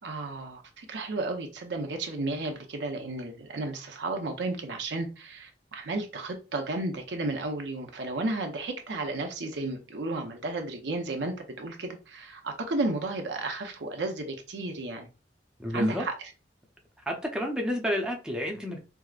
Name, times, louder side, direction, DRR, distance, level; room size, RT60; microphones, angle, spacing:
voice 1, 0.0-15.1 15.7-16.1, right 2 dB, 80° right, 0.7 m, -33 dB
voice 2, 15.6-16.0 17.1-18.8, equal, 5° right, 0.6 m, -30 dB
4.6 x 2.0 x 2.4 m
head